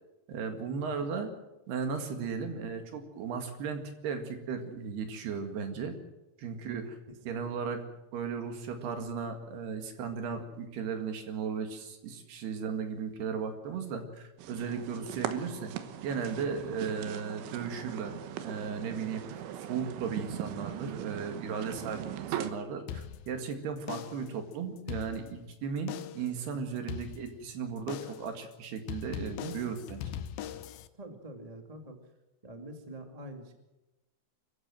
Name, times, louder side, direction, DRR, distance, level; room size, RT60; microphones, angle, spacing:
voice 1, 0.3-1.3 1.7-6.0 6.4-7.0 7.3-7.8 8.1-15.7 16.0-18.1 18.4-19.4 19.7-30.0, right 6 dB, 60° right, 6 dB, 3.8 m, -36 dB
sound 1, 14.4-22.5, right 11 dB, 80° right, 3.6 m, -40 dB
sound 2, 22.9-23.5 23.9-24.4 24.8-25.5 25.9-26.4 26.9-27.5 27.9-28.4 28.9-30.9, left 9 dB, 85° left, 2.1 m, -40 dB
voice 2, 30.9-32.0 32.4-33.5, right 1 dB, 20° right, 4 dB, 0.9 m, -46 dB
25.5 x 15.0 x 7.7 m, 1.0 s
omnidirectional pair, 5.5 m